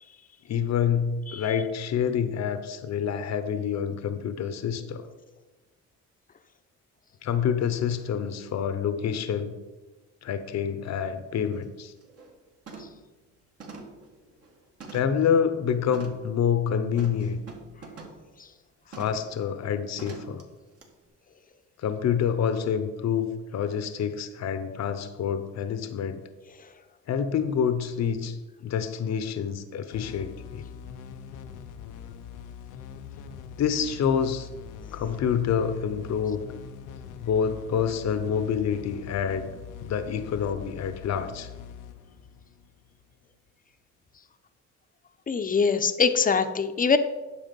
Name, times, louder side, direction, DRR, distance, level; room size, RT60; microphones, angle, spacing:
voice 1, 0.5-5.0 7.2-9.5 10.2-11.9 14.9-17.4 18.9-20.4 21.8-26.2 27.1-30.6 33.6-34.5 34.9-36.4 37.2-39.5 39.8-41.5, left 7 dB, 60° left, 11 dB, 0.9 m, -27 dB
sound 1, 10.9-11.0 11.4-11.6 12.0-12.3 12.7-13.1 13.6-15.3 15.9-16.3 17.0-18.3 18.9-19.3 20.0-20.4 20.8-20.9, right 3 dB, 50° right, 2.3 m, -44 dB
sound 2, 29.9-43.2, left 8 dB, 90° left, 0.7 m, -43 dB
voice 2, 45.3-47.0, left 5 dB, 30° left, 9 dB, 0.8 m, -23 dB
9.5 x 7.1 x 5.3 m, 1.2 s
cardioid pair, 90°, 30 cm